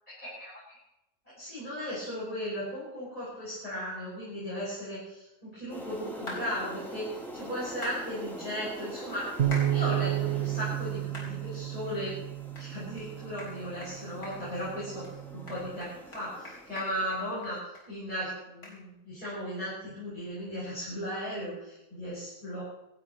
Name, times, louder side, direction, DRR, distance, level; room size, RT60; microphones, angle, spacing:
voice 1, 0.2-0.8 1.4-12.1 12.6-15.0 15.3-17.6 17.9-22.6, equal, 25° left, -9 dB, 7.8 m, -36 dB
sound 1, 5.7-17.5, right 1 dB, ahead, 3.1 m, -44 dB
sound 2, 6.3-6.4 7.8-8.0 9.5-9.7 10.2-10.3 11.1-11.3 11.8-11.9 12.5-12.7 13.0-13.1 13.4-13.5 13.8-13.9 14.2-14.7 15.0-15.1 15.5-17.8 18.1-18.2 18.6-18.8, left 1 dB, 80° left, 5.3 m, -42 dB
sound 3, 9.4-15.6, right 13 dB, 60° right, 1.8 m, -32 dB
26.5 x 13.0 x 3.2 m, 0.88 s
omnidirectional pair, 1.6 m